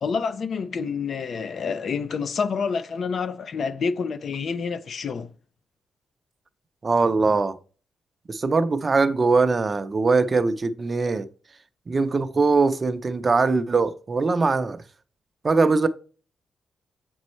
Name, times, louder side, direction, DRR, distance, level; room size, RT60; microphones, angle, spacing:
voice 1, 0.0-5.3, left 5 dB, 55° left, 0.6 m, -28 dB
voice 2, 6.8-7.6 8.3-11.3 11.9-14.8 15.4-15.9, right 4 dB, 35° right, 0.6 m, -21 dB
7.3 x 5.4 x 3.1 m
cardioid pair, 90°, 0 cm